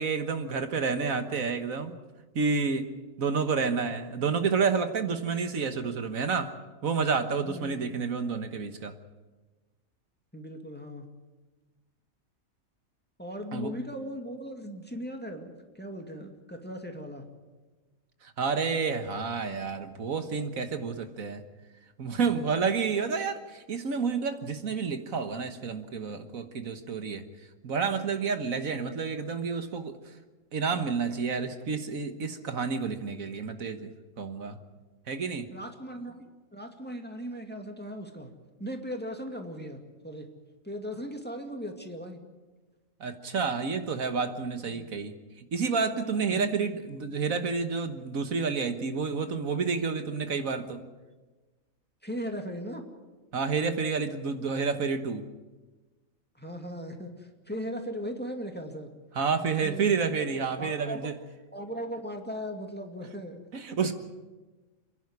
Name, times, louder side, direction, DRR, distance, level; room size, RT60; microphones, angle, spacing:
voice 1, 0.0-2.0 2.4-2.9 3.2-6.5 6.8-8.9 13.5-13.7 18.4-21.4 22.0-27.2 27.6-30.0 30.5-33.9 34.2-34.6 35.1-35.5 43.0-50.8 53.3-55.3 59.2-61.1 63.5-63.9, right 5 dB, 70° right, 8 dB, 1.7 m, -29 dB
voice 2, 10.3-11.1 13.2-17.3 35.5-36.2 36.5-38.3 38.6-40.3 40.6-42.2 44.7-44.9 46.3-46.4 52.0-52.9 56.3-58.9 59.5-60.0 60.6-61.1 61.5-63.4 63.8-63.9, equal, 5° left, 3 dB, 2.2 m, -38 dB
29.0 x 11.0 x 9.7 m, 1.2 s
omnidirectional pair, 1.5 m